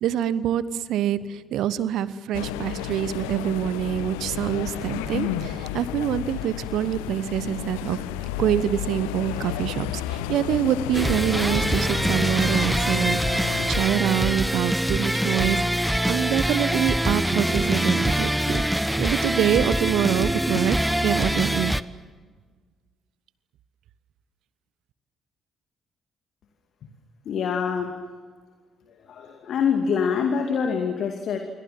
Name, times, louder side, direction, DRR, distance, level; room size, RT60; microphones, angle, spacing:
voice 1, 0.0-0.6 0.9-1.2 1.5-8.0 8.4-15.6 16.0-18.6 19.0-20.8 21.0-21.8, right 10 dB, 60° right, 17 dB, 1.1 m, -25 dB
sound 1, 2.3-13.9, left 12 dB, 70° left, 1.0 m, -32 dB
sound 2, 10.9-21.8, equal, 5° right, 1.0 m, -24 dB
voice 2, 27.3-28.0 29.1-31.4, left 6 dB, 55° left, 5 dB, 2.4 m, -25 dB
27.5 x 24.0 x 7.6 m, 1.5 s
figure-of-eight pair, 40°, 0 cm